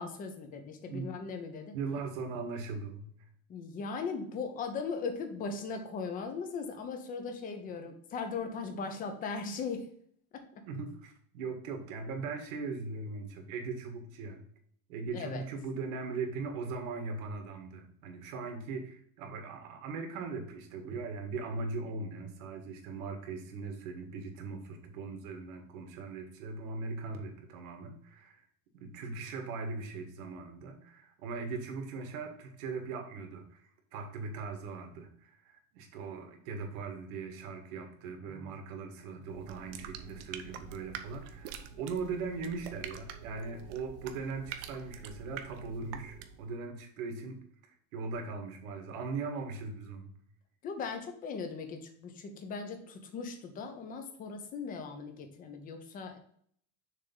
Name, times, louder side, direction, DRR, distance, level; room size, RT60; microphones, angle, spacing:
voice 1, 0.0-1.8 3.5-9.9 10.3-10.6 15.1-15.4 38.2-38.5 50.6-56.2, left 5 dB, 20° left, 6 dB, 0.7 m, -39 dB
voice 2, 1.7-3.1 10.7-14.4 14.9-28.5 28.7-33.6 33.9-50.1, right 4 dB, 85° right, 4 dB, 1.9 m, -39 dB
sound 1, 39.2-46.5, right 8 dB, 55° right, 0.8 m, -46 dB
6.6 x 3.5 x 5.3 m, 0.64 s
cardioid pair, 180°, 40 cm